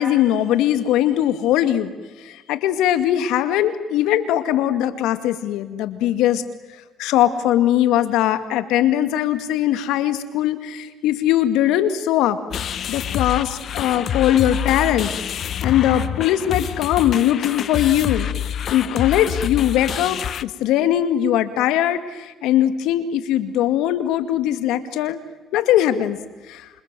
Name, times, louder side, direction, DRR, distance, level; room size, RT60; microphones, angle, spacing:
voice 1, 0.0-1.9 2.2-6.4 7.0-12.4 12.9-15.1 15.6-18.3 18.7-25.2 25.5-26.2 26.5-26.7, left 12 dB, 85° left, 10 dB, 2.2 m, -20 dB
sound 1, 12.5-20.4, left 9 dB, 60° left, 1.0 m, -27 dB
28.5 x 27.0 x 7.7 m, 1.2 s
supercardioid pair, 75°, 0 cm